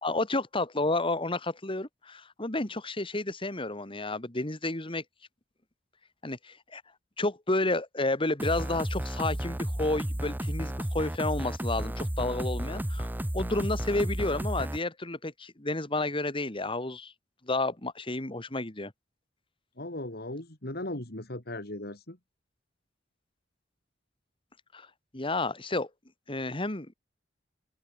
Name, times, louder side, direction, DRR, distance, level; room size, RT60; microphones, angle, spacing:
voice 1, 0.0-5.0 6.2-6.8 7.2-13.1 13.3-17.1 17.4-18.9 24.7-24.9 25.1-25.9 26.3-26.9, left 2 dB, 30° left, 2.4 m, -31 dB
sound 1, 8.4-14.8, right 1 dB, 10° right, 0.9 m, -32 dB
voice 2, 19.8-22.2, left 1 dB, 60° left, 3.5 m, -37 dB
open air
head